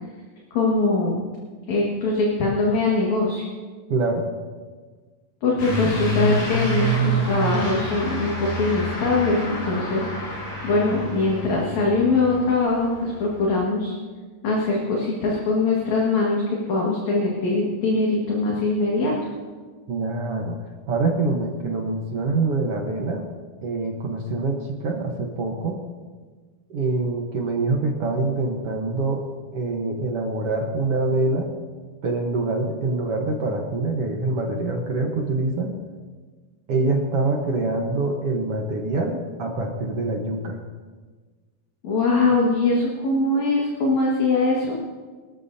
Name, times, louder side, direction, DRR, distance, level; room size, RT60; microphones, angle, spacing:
voice 1, 0.5-1.2 1.7-3.4 5.4-10.2 10.6-13.9 14.4-16.4 16.7-19.1 41.8-44.8, left 3 dB, 55° left, -4 dB, 3.0 m, -22 dB
voice 2, 3.9-4.3 19.9-20.6 20.9-23.2 23.6-25.8 26.7-29.2 29.5-31.5 32.0-35.8 36.7-40.6, right 3 dB, 60° right, 1 dB, 1.7 m, -25 dB
Truck / Accelerating revving vroom, 5.6-13.6, right 2 dB, 80° left, 6.5 m, -27 dB
25.0 x 14.0 x 2.8 m, 1.4 s
omnidirectional pair, 4.1 m